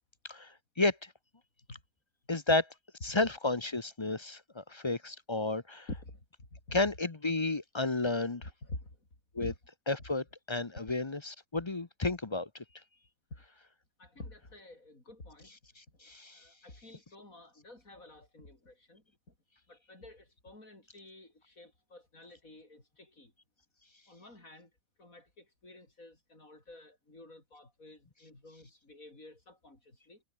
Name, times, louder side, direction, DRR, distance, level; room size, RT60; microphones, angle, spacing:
voice 1, 2.3-2.6 3.0-5.9 6.7-8.4 9.3-9.5 9.9-12.5 16.0-16.4, left 2 dB, 25° left, 0.8 m, -31 dB
voice 2, 5.9-6.8 8.6-9.0 9.4-9.6 13.3-13.4 14.0-15.5 16.0-19.0 19.7-23.3 24.1-24.7 25.0-30.2, left 2 dB, 90° left, 6.9 m, -49 dB
omnidirectional pair, 1.4 m